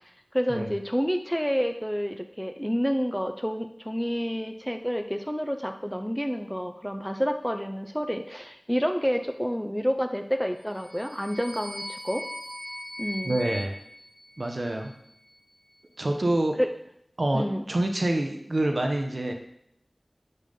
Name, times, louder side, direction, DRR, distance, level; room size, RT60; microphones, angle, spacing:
voice 1, 0.3-12.2 13.0-13.4 16.6-16.7 17.3-17.7, equal, 5° left, 6 dB, 0.5 m, -29 dB
sound 1, 10.6-14.9, left 1 dB, 65° left, 1.7 m, -39 dB
voice 2, 13.2-13.8 14.4-14.9 16.0-16.6 17.2-19.3, right 1 dB, 60° right, 3 dB, 0.8 m, -26 dB
5.4 x 3.4 x 5.3 m, 0.75 s
wide cardioid pair, 50°, 0 cm